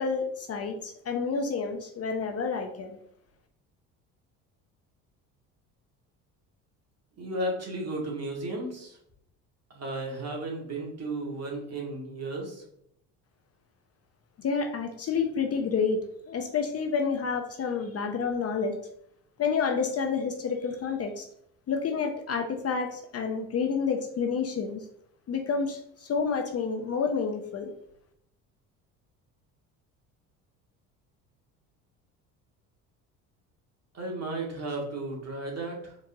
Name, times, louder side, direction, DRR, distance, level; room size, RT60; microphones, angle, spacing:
voice 1, 0.0-2.9 14.4-16.0 16.3-18.8 19.4-21.3 21.7-24.8 25.3-27.7, left 5 dB, 35° left, 5 dB, 0.6 m, -29 dB
voice 2, 7.2-9.0 9.7-12.6 33.9-36.0, right 2 dB, 40° right, -1 dB, 1.8 m, -34 dB
4.5 x 3.8 x 2.7 m, 0.72 s
hypercardioid pair, 70°, 40 cm